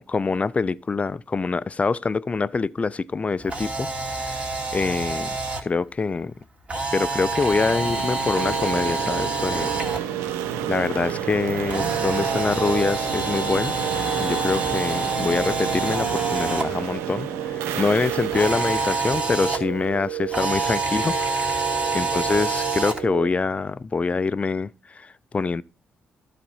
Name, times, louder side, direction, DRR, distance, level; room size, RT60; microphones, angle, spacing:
voice 1, 0.0-6.3 6.9-9.7 10.7-13.8 14.2-21.7 21.9-25.6, left 4 dB, 30° left, 0.5 m, -25 dB
Camera, 3.4-5.6 6.7-10.0 11.7-16.6 18.3-19.6 20.3-23.0, right 3 dB, 30° right, 2.5 m, -27 dB
sound 1, 7.5-20.3, right 9 dB, 80° right, 0.6 m, -32 dB
sound 2, 8.3-23.3, right 11 dB, 60° right, 1.2 m, -33 dB
12.5 x 4.2 x 5.5 m
hypercardioid pair, 50°, 4 cm